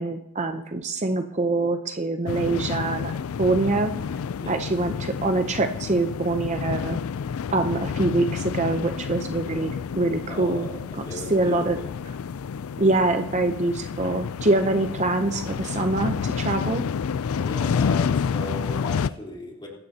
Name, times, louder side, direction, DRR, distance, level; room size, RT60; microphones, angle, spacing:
voice 1, 0.0-3.1 3.4-3.9 4.5-7.0 7.5-11.0 11.3-11.8 12.8-16.9, right 2 dB, 30° right, 6 dB, 0.6 m, -24 dB
sound 1, 2.3-19.1, left 6 dB, 75° left, 0.4 m, -29 dB
voice 2, 4.4-4.7 10.3-11.9 17.3-19.7, left 2 dB, 20° left, -3 dB, 3.6 m, -37 dB
23.5 x 12.5 x 2.8 m, 0.88 s
head